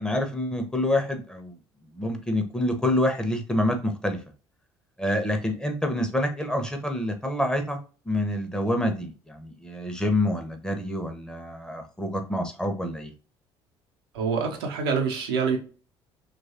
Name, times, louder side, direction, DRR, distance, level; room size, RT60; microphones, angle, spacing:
voice 1, 0.0-1.6 1.9-4.2 5.0-7.8 8.1-13.1, left 1 dB, 5° left, 4 dB, 0.7 m, -27 dB
voice 2, 14.1-15.6, right 5 dB, 70° right, 1 dB, 0.7 m, -26 dB
3.0 x 2.4 x 2.6 m, 0.36 s
figure-of-eight pair, 50°, 14 cm